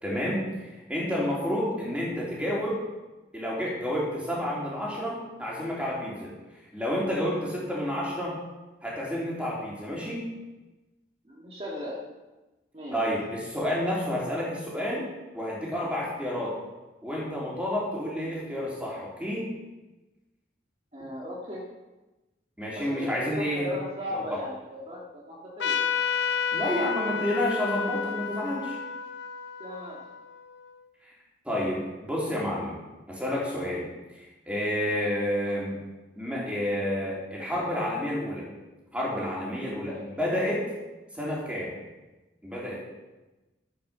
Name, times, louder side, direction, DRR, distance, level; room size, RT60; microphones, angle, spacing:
voice 1, 0.0-0.5 0.9-2.8 3.3-6.3 6.7-8.4 8.8-10.3 12.9-15.1 15.3-16.5 17.0-19.5 22.6-23.7 24.1-24.4 26.5-28.8 31.4-32.8 33.1-33.8 34.2-35.8 36.2-38.5 38.9-40.6 41.1-41.7 42.4-42.8, equal, 5° right, -5 dB, 3.2 m, -30 dB
voice 2, 11.2-12.1 12.7-13.1 20.9-21.7 22.7-25.9 29.6-30.1 39.9-40.2, left 1 dB, 35° right, -5 dB, 2.0 m, -37 dB
Trumpet, 25.6-30.7, left 6 dB, 70° left, 0.8 m, -31 dB
12.5 x 8.5 x 5.7 m, 1.1 s
head